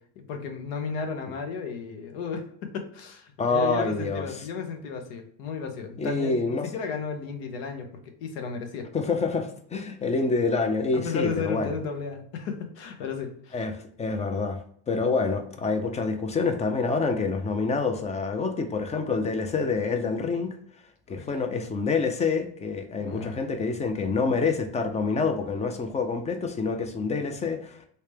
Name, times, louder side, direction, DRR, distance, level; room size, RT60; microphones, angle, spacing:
voice 1, 0.2-2.4 2.7-8.9 10.9-13.6 21.1-21.3 23.0-23.3, left 5 dB, 85° left, 5 dB, 0.9 m, -34 dB
voice 2, 3.4-4.5 6.0-6.7 8.9-11.7 13.5-13.7 14.0-14.6 14.9-20.5 21.1-27.9, left 4 dB, 20° left, 6 dB, 0.3 m, -27 dB
3.2 x 2.8 x 3.3 m, 0.64 s
cardioid pair, 125°, 42 cm